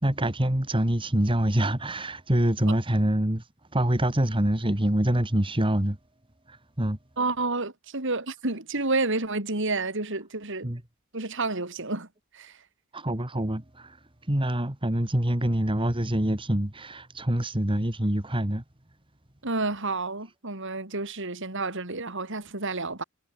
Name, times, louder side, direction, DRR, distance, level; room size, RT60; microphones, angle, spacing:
voice 1, 0.0-3.4 3.7-6.0 6.5-7.0 10.6-10.8 12.9-14.0 14.3-18.6, right 1 dB, 25° right, 2.2 m, -25 dB
voice 2, 7.2-10.7 11.1-12.1 12.3-12.6 19.4-23.0, right 3 dB, 60° right, 4.0 m, -30 dB
head